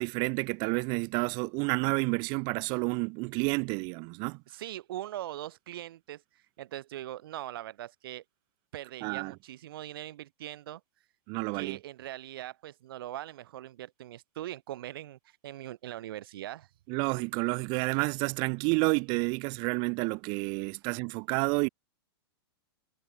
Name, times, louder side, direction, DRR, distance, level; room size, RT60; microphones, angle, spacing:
voice 1, 0.0-4.4 9.0-9.3 11.3-11.8 16.9-21.7, right 33 dB, 35° right, 1.7 m, -30 dB
voice 2, 4.5-8.2 8.7-10.8 11.5-16.7, right 13 dB, 60° right, 1.0 m, -41 dB
hypercardioid pair, 160°, 13 cm